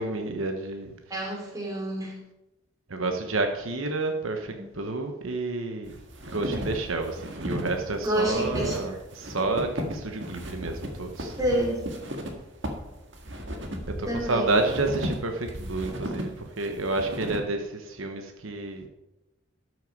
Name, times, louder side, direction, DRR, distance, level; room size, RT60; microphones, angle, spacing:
voice 1, 0.0-0.9 2.9-6.0 6.3-11.3 14.0-18.9, right 2 dB, 75° right, 4 dB, 1.1 m, -30 dB
voice 2, 1.1-2.2 4.5-4.7 8.0-8.8 11.4-11.9 14.1-14.5, right 1 dB, 15° right, -2 dB, 3.0 m, -28 dB
sound 1, 5.8-17.4, equal, 60° right, 1.8 m, -36 dB
13.0 x 6.4 x 5.3 m, 0.98 s
head